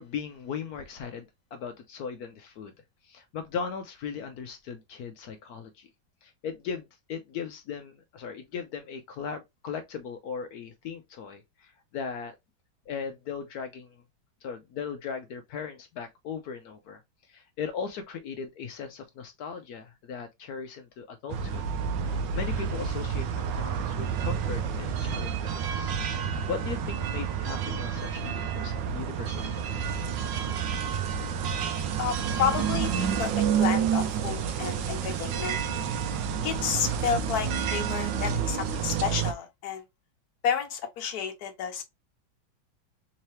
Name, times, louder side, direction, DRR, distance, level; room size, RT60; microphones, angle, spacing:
voice 1, 0.0-2.7 3.0-5.9 6.2-12.3 12.9-14.0 14.4-17.0 17.3-21.7 22.0-25.9 26.5-29.6, left 6 dB, 75° left, 0.8 m, -38 dB
sound 1, 21.3-39.3, right 7 dB, 75° right, 1.2 m, -29 dB
voice 2, 32.0-35.6 36.4-39.8 40.4-41.8, left 8 dB, 60° left, 1.2 m, -31 dB
3.7 x 2.8 x 3.1 m
omnidirectional pair, 2.1 m